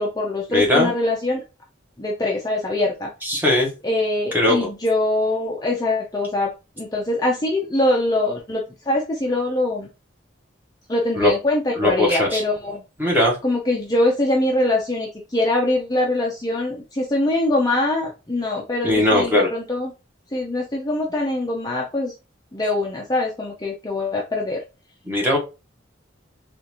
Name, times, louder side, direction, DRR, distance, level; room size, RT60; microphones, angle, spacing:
voice 1, 0.0-1.4 2.0-3.1 3.8-6.5 6.8-9.9 10.9-12.8 13.4-19.9 20.3-22.1 22.5-24.6, left 2 dB, 20° left, -1 dB, 0.6 m, -23 dB
voice 2, 0.5-0.9 3.2-3.7 4.3-4.6 11.1-11.3 11.8-12.4 13.0-13.4 18.8-19.5 25.1-25.4, left 1 dB, 10° right, -2 dB, 1.2 m, -19 dB
3.8 x 2.5 x 2.9 m, 0.28 s
head